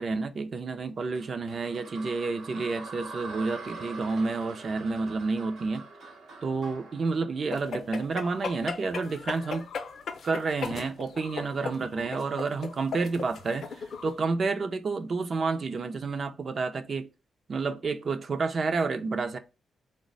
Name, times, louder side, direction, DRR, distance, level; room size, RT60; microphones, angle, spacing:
voice 1, 0.0-5.9 6.4-9.7 10.2-17.1 17.5-19.4, right 4 dB, 35° right, 0.4 m, -30 dB
sound 1, 1.1-8.3, right 3 dB, 75° right, 0.9 m, -44 dB
sound 2, 7.5-14.2, left 5 dB, 50° left, 0.5 m, -37 dB
3.9 x 2.1 x 3.8 m
wide cardioid pair, 170°, 0 cm